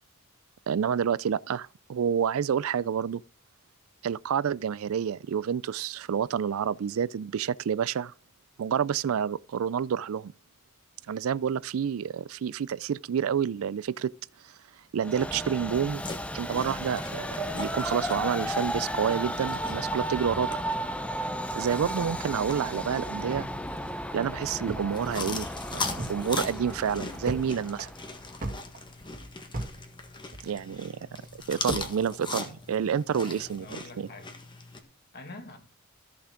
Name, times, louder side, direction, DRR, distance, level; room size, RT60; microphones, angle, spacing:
voice 1, 0.7-3.2 4.0-8.1 8.6-10.3 11.1-14.1 14.4-14.5 14.9-16.0 16.3-20.6 21.6-23.5 24.1-27.9 30.4-31.1 31.3-34.1, right 8 dB, 65° right, 0.4 m, -29 dB
Train, 15.0-28.5, equal, 5° left, 0.6 m, -34 dB
sound 1, 16.0-34.8, left 3 dB, 20° left, 1.5 m, -41 dB
sound 2, 23.3-25.0 25.3-25.4 25.7-26.2 26.6-27.5 27.8-29.8 30.1-30.7 31.2-32.0, right 1 dB, 40° right, 2.0 m, -37 dB
voice 2, 33.2-34.3 35.1-35.6, left 2 dB, 45° left, 2.2 m, -45 dB
14.0 x 6.8 x 3.8 m
head